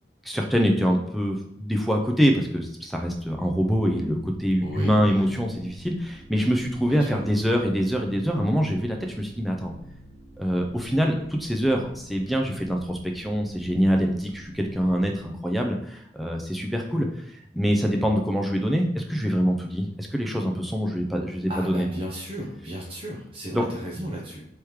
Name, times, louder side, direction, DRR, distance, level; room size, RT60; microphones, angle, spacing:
voice 1, 0.2-9.7 10.4-17.1 17.5-21.9 23.5-23.6, equal, ahead, 1 dB, 0.4 m, -24 dB
sound 1, 3.1-15.3, right 1 dB, 60° right, 1.7 m, -47 dB
voice 2, 4.6-5.3 6.9-7.3 21.5-24.4, equal, 30° right, -3 dB, 0.7 m, -35 dB
3.5 x 3.0 x 4.7 m, 0.73 s
head